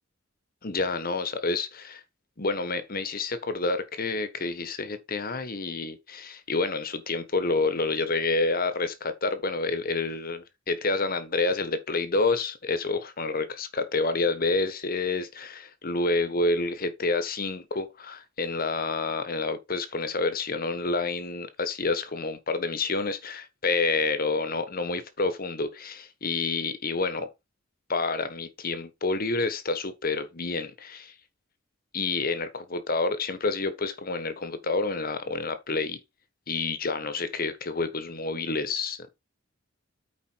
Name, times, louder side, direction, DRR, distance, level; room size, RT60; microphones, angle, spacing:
voice 1, 0.6-2.0 2.4-27.3 27.9-31.1 31.9-36.0 36.5-39.1, left 3 dB, 45° left, 1.2 m, -28 dB
8.9 x 4.5 x 4.6 m
head